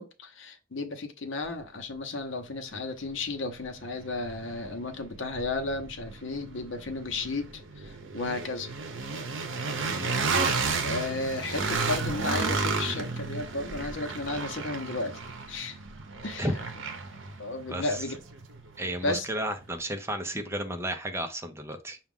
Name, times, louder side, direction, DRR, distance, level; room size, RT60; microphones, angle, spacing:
voice 1, 0.0-8.7 10.8-15.2 15.5-15.8 16.2-16.5 17.4-18.1 19.0-19.3, left 3 dB, 70° left, 0.8 m, -33 dB
sound 1, 2.7-2.8 3.2-19.2, right 4 dB, 75° right, 0.7 m, -33 dB
voice 2, 17.7-18.0 18.8-22.0, right 1 dB, 15° right, 0.6 m, -33 dB
5.9 x 2.4 x 3.6 m
head